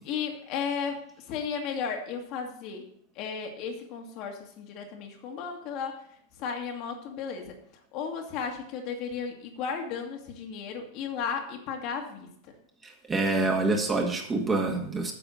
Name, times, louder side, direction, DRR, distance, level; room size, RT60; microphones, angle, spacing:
voice 1, 0.1-2.8 3.2-6.0 6.4-7.6 7.9-12.3, left 6 dB, 40° left, 3 dB, 1.9 m, -34 dB
voice 2, 12.8-15.1, right 2 dB, 15° right, 2 dB, 2.0 m, -26 dB
9.1 x 6.9 x 6.5 m, 0.65 s
figure-of-eight pair, 90°, 0 cm